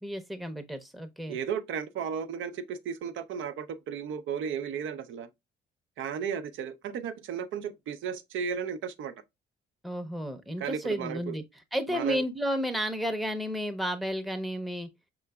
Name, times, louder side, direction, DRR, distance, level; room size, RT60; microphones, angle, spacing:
voice 1, 0.0-1.4 9.8-11.4 11.7-14.9, equal, ahead, 0.6 m, -32 dB
voice 2, 1.3-5.3 6.0-9.1 10.6-11.4 11.9-12.2, right 7 dB, 75° right, 0.5 m, -34 dB
4.8 x 3.8 x 2.2 m
cardioid pair, 90°, 20 cm